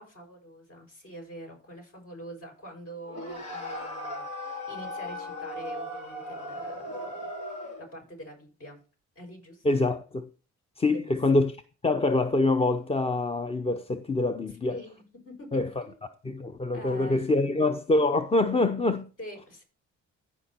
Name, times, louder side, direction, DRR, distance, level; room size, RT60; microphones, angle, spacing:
voice 1, 0.0-8.8 9.1-9.9 10.9-11.4 14.7-16.0 16.7-17.2 19.2-19.6, equal, 50° left, 6.6 m, -45 dB
sound 1, 3.1-7.9, left 1 dB, 85° left, 3.7 m, -37 dB
voice 2, 9.6-10.2 10.8-11.5 11.8-14.8 15.5-15.7 16.2-19.1, left 2 dB, 20° left, 0.6 m, -25 dB
14.5 x 5.3 x 4.3 m
cardioid pair, 90°, 30 cm